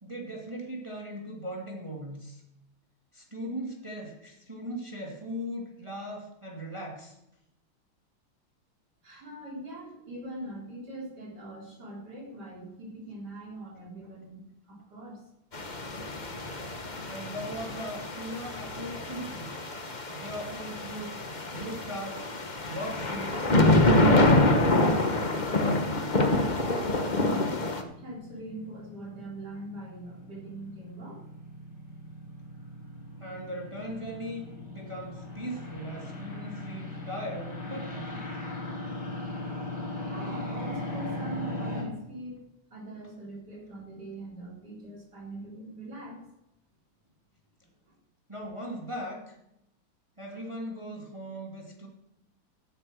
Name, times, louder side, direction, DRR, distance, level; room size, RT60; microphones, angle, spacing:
voice 1, 0.0-2.4 3.1-7.1 17.1-19.6 20.1-21.2 21.5-22.4 22.6-23.5 23.9-24.9 33.2-38.3 48.3-49.3 50.2-51.9, equal, 15° right, -1 dB, 2.4 m, -39 dB
voice 2, 9.0-15.2 26.3-27.5 28.0-31.2 40.0-42.4 42.7-46.2, right 1 dB, 50° right, -2 dB, 4.3 m, -42 dB
sound 1, 15.5-27.8, left 2 dB, 30° left, 1.0 m, -26 dB
sound 2, 27.6-41.8, left 1 dB, 50° left, 4.0 m, -39 dB
16.5 x 8.9 x 6.3 m, 0.86 s
omnidirectional pair, 2.4 m